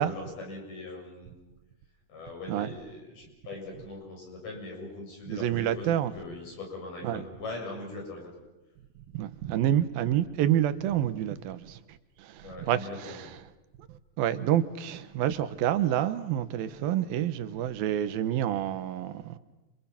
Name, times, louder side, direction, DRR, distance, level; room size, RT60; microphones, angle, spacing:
voice 1, 0.0-1.3 2.1-8.3 12.4-13.2, left 2 dB, 60° left, 9.0 m, -41 dB
voice 2, 5.3-6.1 7.0-7.2 9.0-13.4 13.9-19.4, right 11 dB, 85° right, 2.9 m, -28 dB
29.5 x 28.5 x 5.9 m
omnidirectional pair, 4.2 m